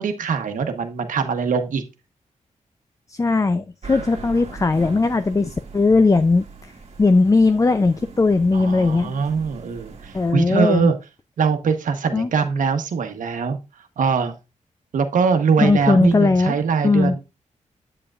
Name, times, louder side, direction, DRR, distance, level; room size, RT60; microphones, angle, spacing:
voice 1, 0.0-1.8 8.5-11.0 11.4-13.6 14.0-14.4 14.9-17.2, right 5 dB, 80° right, 7 dB, 1.1 m, -22 dB
voice 2, 3.1-6.5 7.0-9.1 10.1-10.9 12.1-12.3 15.6-16.6 16.8-17.2, left 3 dB, 25° left, 11 dB, 0.5 m, -18 dB
sound 1, 3.8-10.3, right 4 dB, 55° right, 1.6 m, -40 dB
8.7 x 7.7 x 2.4 m, 0.26 s
cardioid pair, 70°, 13 cm